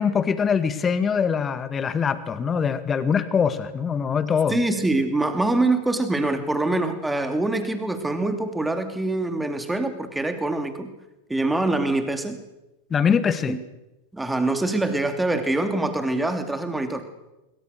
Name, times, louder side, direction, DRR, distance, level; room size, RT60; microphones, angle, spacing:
voice 1, 0.0-4.6 12.9-13.6, left 6 dB, 20° left, 13 dB, 1.9 m, -23 dB
voice 2, 4.5-10.9 11.3-12.4 13.5-13.6 14.1-17.1, right 2 dB, 5° right, 7 dB, 3.1 m, -24 dB
25.0 x 23.5 x 6.7 m, 0.98 s
figure-of-eight pair, 90°, 0 cm